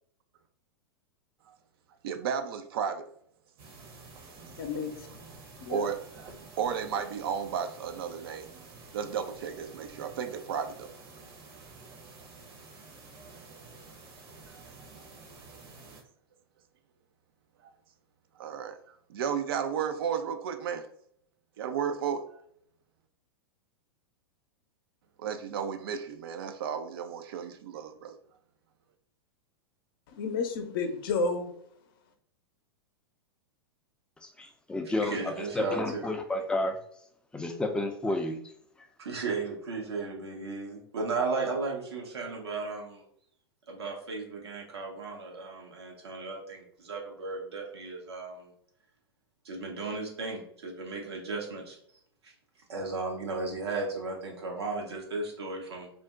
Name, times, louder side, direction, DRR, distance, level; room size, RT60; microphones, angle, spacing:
voice 1, 2.0-3.1 5.7-6.3 6.6-8.5 8.9-10.9 18.4-18.8 19.1-20.9 21.6-22.4 25.2-28.1, right 7 dB, 65° right, 0.4 m, -33 dB
sound 1, 3.6-16.0, right 3 dB, 45° right, 0.8 m, -50 dB
voice 2, 4.6-4.9 5.6-5.9 30.1-31.5, left 4 dB, 60° left, 0.6 m, -31 dB
voice 3, 34.2-36.8 37.3-38.4, left 2 dB, 5° left, 0.4 m, -31 dB
voice 4, 34.8-36.1 39.0-43.0 43.7-48.5 49.4-51.8 52.2-52.3 52.7-55.9, right 3 dB, 80° right, 0.9 m, -35 dB
2.5 x 2.1 x 3.5 m
hypercardioid pair, 105°, 13 cm